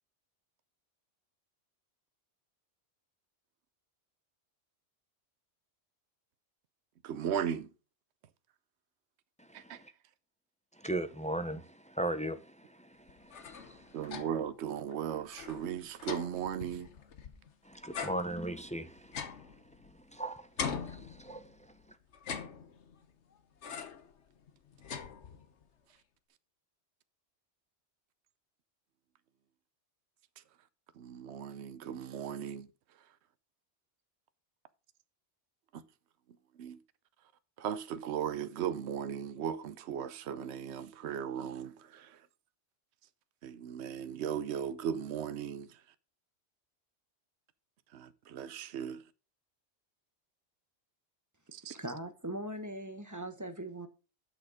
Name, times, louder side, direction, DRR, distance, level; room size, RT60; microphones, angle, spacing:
voice 1, 7.0-7.7 9.7-9.8 13.9-16.9 31.0-32.7 36.6-36.8 37.6-41.7 43.4-45.7 47.9-49.0 51.7-51.8, right 8 dB, 70° right, 1.0 m, -37 dB
voice 2, 9.4-9.9 10.8-14.2 17.7-19.3 19.8-21.5, right 1 dB, 10° left, 0.3 m, -39 dB
sound 1, 13.1-14.5 14.9-15.0 15.3-17.5 17.9-20.2 20.6-21.7 22.1-23.0 23.6-24.1 24.5-25.6, left 6 dB, 75° left, 1.3 m, -42 dB
voice 3, 51.7-53.9, right 1 dB, 15° right, 0.9 m, -40 dB
8.2 x 6.5 x 5.0 m
omnidirectional pair, 1.2 m